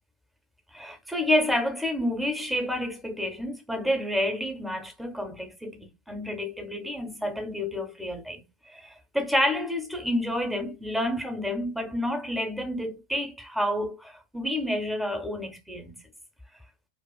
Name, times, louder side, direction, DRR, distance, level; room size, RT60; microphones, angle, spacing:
voice 1, 0.7-16.0, left 1 dB, 5° right, 0.7 m, -29 dB
2.3 x 2.3 x 2.3 m
figure-of-eight pair, 90°, 0 cm